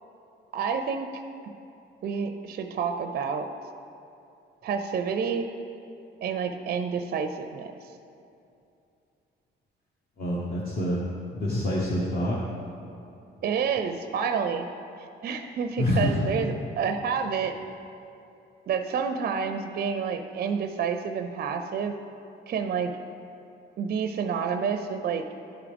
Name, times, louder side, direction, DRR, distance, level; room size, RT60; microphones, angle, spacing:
voice 1, 0.5-1.1 2.0-3.5 4.6-5.5 6.2-7.7 13.4-14.7 15.0-17.5 18.7-21.9 22.5-22.9 23.8-25.2, right 6 dB, 50° right, 7 dB, 0.4 m, -29 dB
voice 2, 10.2-11.0 11.3-12.4 15.8-16.2, left 1 dB, 45° left, -5 dB, 1.0 m, -26 dB
11.5 x 4.8 x 3.4 m, 2.7 s
cardioid pair, 90°, 20 cm